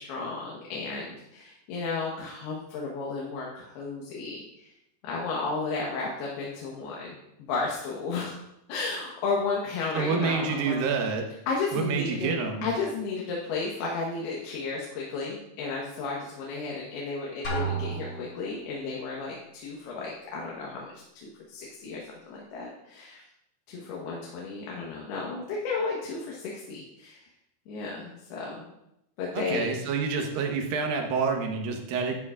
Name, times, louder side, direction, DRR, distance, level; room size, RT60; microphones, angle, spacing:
voice 1, 0.0-4.7 5.0-7.2 7.5-8.4 8.7-10.8 11.5-12.3 12.6-20.9 21.2-23.2 23.7-27.2 27.7-28.7 29.2-29.7, left 4 dB, 85° left, -3 dB, 3.3 m, -33 dB
voice 2, 9.9-11.3 11.7-12.7 29.3-32.2, right 5 dB, 70° right, 2 dB, 2.7 m, -28 dB
Drum, 17.4-18.6, right 4 dB, 30° left, 2.6 m, -32 dB
11.5 x 10.5 x 2.4 m, 0.84 s
omnidirectional pair, 4.5 m